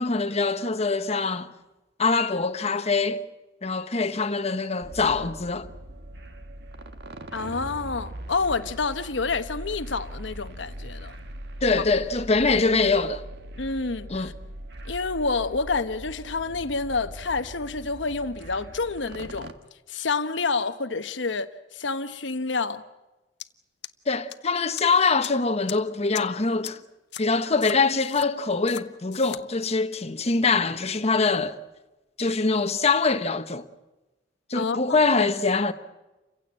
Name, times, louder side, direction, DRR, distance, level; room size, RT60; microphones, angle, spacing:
voice 1, 0.0-1.5 2.0-3.2 3.6-5.7 11.6-13.2 14.1-14.3 24.1-26.8 27.2-31.6 32.2-33.6 34.5-35.7, left 4 dB, 35° left, 1.1 m, -24 dB
sound 1, 4.8-19.5, right 1 dB, 65° right, 1.6 m, -40 dB
voice 2, 7.3-11.1 11.7-11.8 13.6-14.3 14.8-19.5 19.9-22.8 34.5-35.0, left 4 dB, 85° left, 1.1 m, -28 dB
sound 2, 23.4-23.5 23.8-24.3 24.8-24.9 25.2-25.3 25.7-25.8 26.1-26.2 26.6-26.7 27.1-27.2 27.6-28.3 28.7-28.8 29.1-29.4, left 12 dB, 70° left, 0.9 m, -37 dB
29.0 x 16.0 x 8.8 m
head